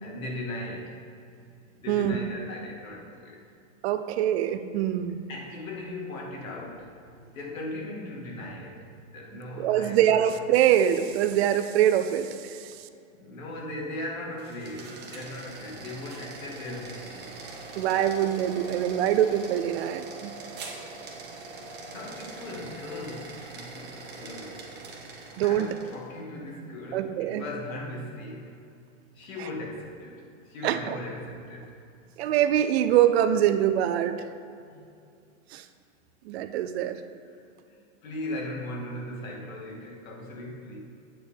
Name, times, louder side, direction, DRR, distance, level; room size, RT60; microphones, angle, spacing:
voice 1, 0.0-1.0 1.7-3.4 5.3-10.2 13.1-17.4 21.9-24.8 25.3-28.6 29.1-31.7 34.6-34.8 37.7-40.8, left 1 dB, 80° left, -1 dB, 2.3 m, -38 dB
voice 2, 1.9-2.2 3.8-5.2 9.6-12.9 17.8-20.3 25.4-25.7 26.9-27.5 29.4-29.5 30.6-31.0 32.2-34.2 35.5-35.6 36.2-37.0, right 11 dB, 50° right, 10 dB, 0.6 m, -24 dB
sound 1, 14.3-26.1, right 3 dB, 25° right, 1.3 m, -42 dB
8.6 x 4.5 x 7.1 m, 2.5 s
hypercardioid pair, 135°, 40 cm